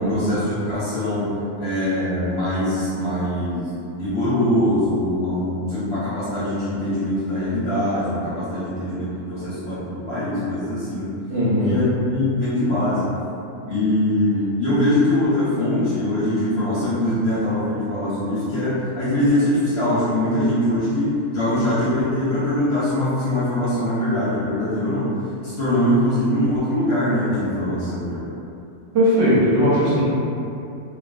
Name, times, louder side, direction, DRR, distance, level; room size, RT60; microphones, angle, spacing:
voice 1, 0.0-11.1 11.6-13.1 13.7-25.1 25.4-28.3, left 1 dB, 60° left, -11 dB, 0.7 m, -22 dB
voice 2, 11.3-11.8 28.9-30.0, equal, 70° right, -8 dB, 0.9 m, -18 dB
2.4 x 2.2 x 2.3 m, 2.6 s
omnidirectional pair, 1.5 m